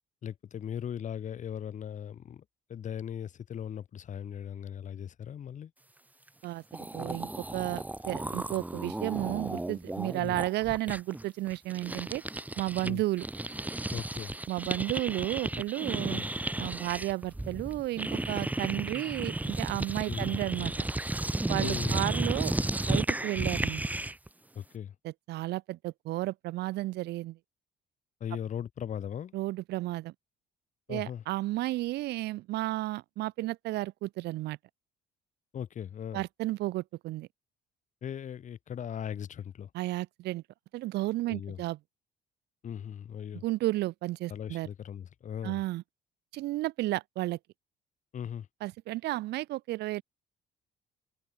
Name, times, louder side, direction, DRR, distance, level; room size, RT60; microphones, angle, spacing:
voice 1, 0.2-2.4 2.7-5.7 10.2-10.4 12.8-13.0 13.9-14.4 16.1-16.3 20.1-20.4 21.6-22.0 24.5-25.0 28.2-29.3 30.9-31.2 35.5-36.2 38.0-39.7 41.3-41.6 42.6-43.4 44.3-45.6 48.1-48.5, left 9 dB, 45° left, 2.3 m, -38 dB
sound 1, 6.4-6.5 6.7-12.9 13.2-24.3, right 2 dB, 10° right, 3.4 m, -33 dB
voice 2, 6.4-12.2 12.6-13.2 14.5-16.2 16.6-20.7 21.5-22.6 22.9-23.9 25.0-27.4 29.3-30.1 30.9-34.6 36.1-37.3 39.7-40.4 40.7-41.8 43.4-44.7 45.4-45.8 46.3-47.4 48.6-50.0, right 17 dB, 80° right, 2.9 m, -33 dB
cardioid pair, 110°, 17 cm